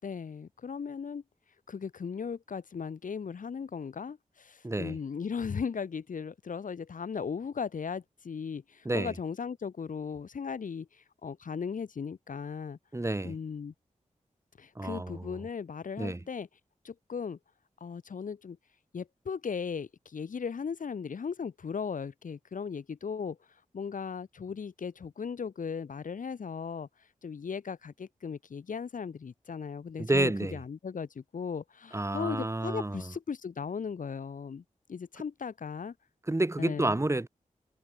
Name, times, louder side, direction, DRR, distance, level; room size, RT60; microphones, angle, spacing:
voice 1, 0.0-1.2 1.7-12.8 13.2-13.7 14.6-16.5 16.8-17.4 17.8-18.6 18.9-23.4 23.7-26.9 27.2-34.6 34.9-35.9 36.6-37.0, left 6 dB, 85° left, 7.1 m, -37 dB
voice 2, 4.6-5.0 8.8-9.1 12.9-13.4 14.8-15.3 16.0-16.2 30.0-30.6 31.9-33.0 36.3-37.3, right 2 dB, 20° right, 6.3 m, -29 dB
wide cardioid pair, 95°, 13 cm